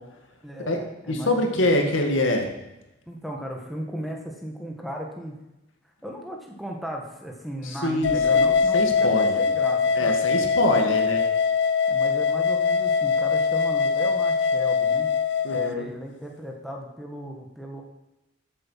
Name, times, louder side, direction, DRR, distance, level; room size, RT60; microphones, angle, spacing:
voice 1, 0.4-1.7 3.1-5.4 6.0-10.9 11.9-15.1 15.5-17.8, equal, ahead, 0 dB, 1.5 m, -36 dB
voice 2, 1.1-2.5 7.6-9.4 9.9-11.2 15.4-15.7, left 1 dB, 75° left, 3 dB, 2.1 m, -24 dB
sound 1, 8.0-15.7, left 5 dB, 60° left, 0.7 m, -22 dB
13.5 x 7.9 x 5.8 m, 0.95 s
head